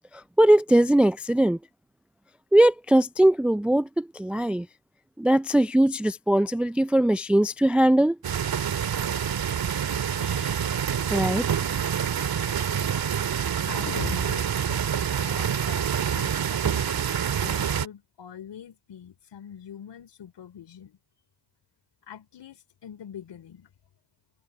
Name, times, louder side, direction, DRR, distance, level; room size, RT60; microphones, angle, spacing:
voice 1, 0.1-1.6 2.5-4.7 5.2-8.2 11.1-11.6, right 1 dB, ahead, 0.4 m, -21 dB
sound 1, 8.2-17.9, right 8 dB, 45° right, 2.1 m, -27 dB
voice 2, 13.7-21.0 22.1-23.7, left 9 dB, 55° left, 4.6 m, -43 dB
hypercardioid pair, 50°, 49 cm